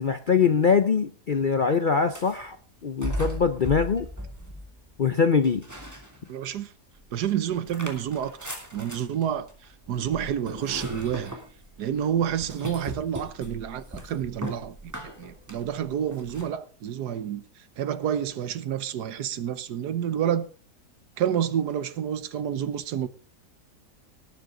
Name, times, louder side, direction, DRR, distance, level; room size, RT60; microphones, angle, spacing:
voice 1, 0.0-2.6 2.8-4.1 5.0-5.6, left 5 dB, 55° left, 0.6 m, -23 dB
sound 1, 2.0-2.5 3.0-5.0 5.4-6.6 7.0-16.5, equal, 10° right, 2.8 m, -38 dB
voice 2, 6.3-6.7 7.1-9.5 9.9-11.3 11.8-14.8 15.2-17.4 17.8-20.5 21.2-23.1, right 9 dB, 85° right, 1.5 m, -29 dB
18.5 x 9.5 x 3.8 m
omnidirectional pair, 1.7 m